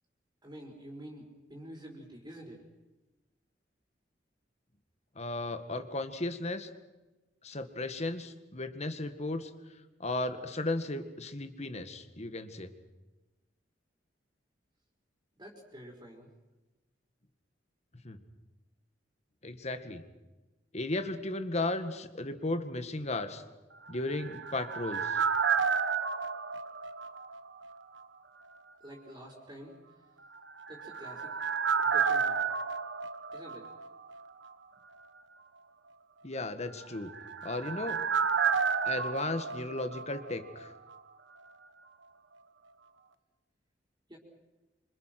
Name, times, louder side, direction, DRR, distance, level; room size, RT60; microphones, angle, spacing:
voice 1, 0.4-2.6 15.4-16.3 28.8-29.8 30.7-32.4 33.3-33.7 44.1-44.2, equal, 25° right, -1 dB, 4.7 m, -48 dB
voice 2, 5.2-6.7 7.4-9.5 10.0-12.7 18.0-18.2 19.4-20.0 20.7-23.4 23.9-25.2 36.2-37.1 37.4-38.0 38.8-40.7, left 2 dB, 40° left, 9 dB, 1.9 m, -35 dB
sound 1, 23.9-27.7 28.0-28.1 30.5-34.2 34.4-34.5 36.8-40.7 40.9-41.0, right 6 dB, 90° right, 1.2 m, -31 dB
27.0 x 26.0 x 6.1 m, 1.1 s
head